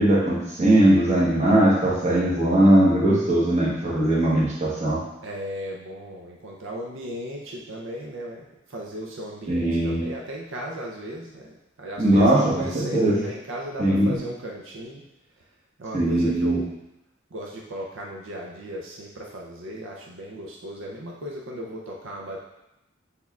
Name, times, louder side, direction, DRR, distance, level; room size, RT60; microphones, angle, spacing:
voice 1, 0.0-5.0 9.5-10.0 12.0-13.2 13.8-14.1 15.9-16.6, right 1 dB, 35° right, -5 dB, 1.0 m, -20 dB
voice 2, 5.2-15.0 15.8-16.8 17.3-22.4, equal, 75° right, -2 dB, 0.6 m, -36 dB
6.3 x 3.5 x 2.3 m, 0.91 s
head